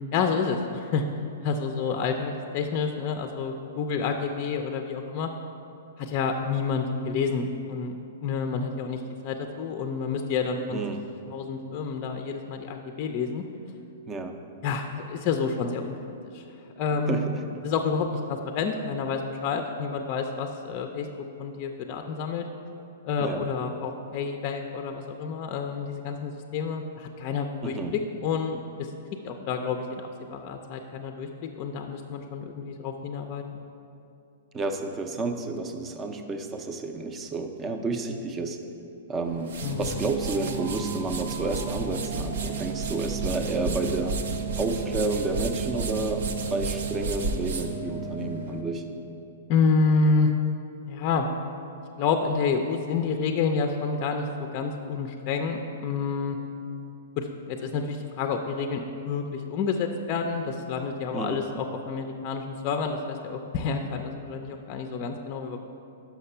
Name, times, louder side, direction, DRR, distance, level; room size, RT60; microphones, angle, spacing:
voice 1, 0.1-1.0 1.4-5.3 6.0-10.8 11.3-13.4 14.6-16.0 16.3-16.4 16.8-17.3 17.6-21.1 21.4-22.4 23.0-28.9 29.2-33.4 39.6-39.9 49.5-50.3 50.9-51.3 52.0-56.4 57.2-65.7, left 5 dB, 40° left, 5 dB, 0.4 m, -29 dB
voice 2, 10.7-11.1 14.1-14.4 17.1-17.4 23.2-23.4 27.6-28.0 34.5-38.6 39.1-44.2 44.6-48.9 61.1-61.4, right 3 dB, 20° right, 6 dB, 0.5 m, -30 dB
sound 1, 39.2-48.6, right 2 dB, 75° right, 0.6 m, -34 dB
sound 2, 39.6-48.8, right 6 dB, 55° right, 1.0 m, -35 dB
5.9 x 5.7 x 5.5 m, 2.7 s
hypercardioid pair, 140°, 0 cm